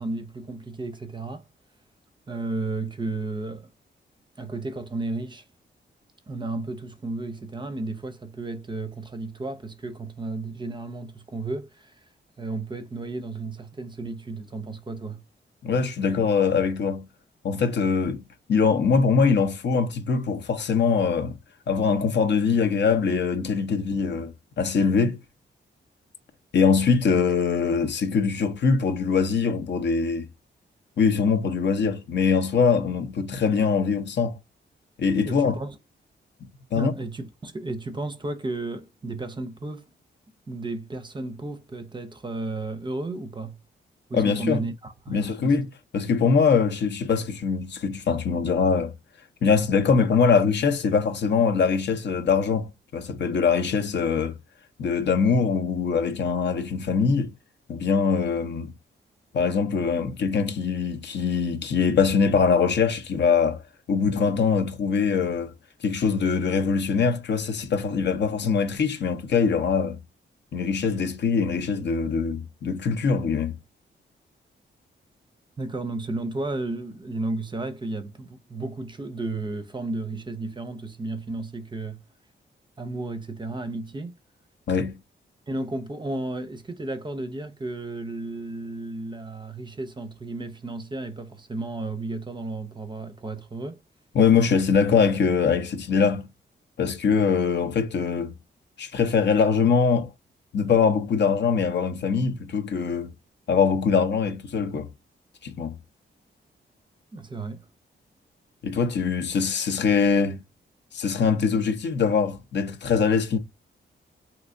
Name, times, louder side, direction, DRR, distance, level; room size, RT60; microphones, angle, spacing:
voice 1, 0.0-1.4 2.3-3.7 4.4-5.4 6.3-12.0 12.4-15.2 35.2-35.8 36.8-39.9 40.5-43.6 44.1-45.6 75.6-82.0 82.8-84.1 85.5-93.8 107.1-107.6, right 2 dB, 25° right, 0.5 m, -33 dB
voice 2, 15.6-17.1 17.4-18.2 18.5-21.3 21.7-25.2 26.5-30.3 31.0-34.4 35.0-35.6 36.7-36.9 44.1-44.6 45.1-45.7 45.9-48.9 49.4-54.4 54.8-57.3 57.7-58.7 59.3-63.6 63.9-65.5 65.8-70.0 70.5-73.6 84.7-85.0 94.1-96.3 96.8-98.3 98.8-100.1 100.5-103.1 103.5-104.9 105.4-105.7 108.6-110.4 110.9-113.4, left 5 dB, 65° left, 0.7 m, -23 dB
3.3 x 2.9 x 2.5 m
cardioid pair, 105°, 19 cm